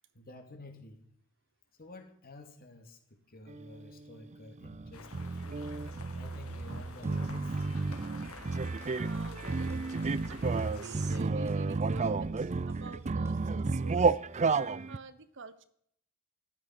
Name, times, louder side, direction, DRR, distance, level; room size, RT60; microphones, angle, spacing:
voice 1, 0.1-1.0 1.8-7.6, left 2 dB, 45° left, 5 dB, 2.7 m, -51 dB
sound 1, 3.5-3.9 4.3-15.0, right 4 dB, 30° right, 0.5 m, -32 dB
sound 2, 4.9-11.2, left 4 dB, 70° left, 1.6 m, -50 dB
sound 3, 6.6-7.1 7.4-8.0 8.3-8.9 9.1-9.8 10.0-13.7, equal, 10° right, 1.4 m, -53 dB
voice 2, 8.9-9.8 10.3-14.2 14.9-15.6, right 4 dB, 60° right, 13 dB, 1.0 m, -50 dB
14.5 x 12.0 x 6.0 m, 0.68 s
head